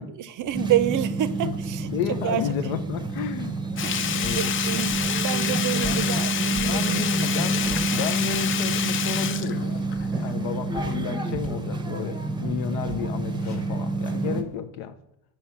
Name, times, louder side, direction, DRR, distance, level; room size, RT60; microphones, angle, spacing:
voice 1, 0.2-1.9 2.2-2.5 3.8-7.0, right 11 dB, 50° right, 0.5 m, -28 dB
sound 1, 0.5-14.4, right 3 dB, 10° right, 0.7 m, -28 dB
voice 2, 1.9-3.6 4.0-4.5 5.7-6.3 6.6-7.6 7.9-9.9 10.2-15.0, left 10 dB, 80° left, 0.6 m, -32 dB
sound 2, 1.9-2.7 3.2-3.4 3.8-3.9 4.2-4.5 4.9-5.2 5.6-7.3 7.6-9.1 9.6-11.7 12.1-12.2 12.4-14.6, right 1 dB, 60° left, 1.3 m, -41 dB
Sink (filling or washing), 3.8-10.3 10.6-10.7, left 9 dB, 35° left, 0.4 m, -28 dB
4.6 x 4.3 x 5.5 m
supercardioid pair, 85°, 40 cm